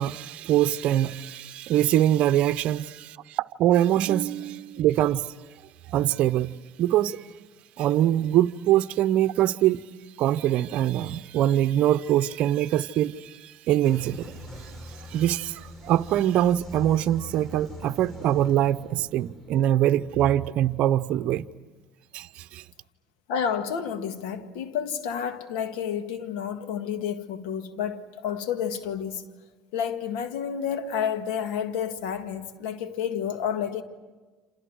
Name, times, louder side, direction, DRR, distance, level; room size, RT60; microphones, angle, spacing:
voice 1, 0.0-5.3 5.9-7.3 7.8-9.8 10.2-14.3 14.6-14.7 15.1-21.4 22.1-22.6, right 12 dB, 65° right, 0.7 m, -23 dB
sound 1, 13.8-21.4, equal, 20° left, 6.1 m, -44 dB
voice 2, 23.3-29.2 29.7-33.8, left 8 dB, 80° left, 1.9 m, -30 dB
28.5 x 27.5 x 6.4 m
supercardioid pair, 80°, 2 cm